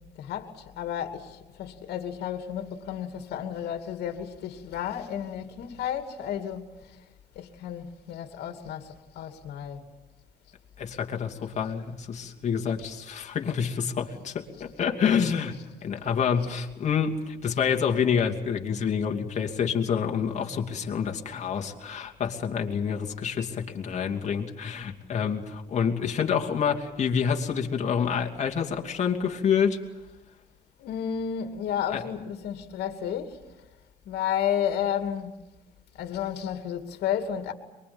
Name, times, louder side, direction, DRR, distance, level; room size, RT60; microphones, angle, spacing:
voice 1, 0.2-6.7 7.4-9.9 12.9-13.0 15.3-15.6 17.5-17.6 30.8-33.4 34.1-35.4 36.0-37.5, left 9 dB, 75° left, 2.6 m, -32 dB
voice 2, 10.8-29.8 31.9-32.0, left 7 dB, 45° left, 2.8 m, -27 dB
23.5 x 22.5 x 8.8 m
cardioid pair, 110°, 17 cm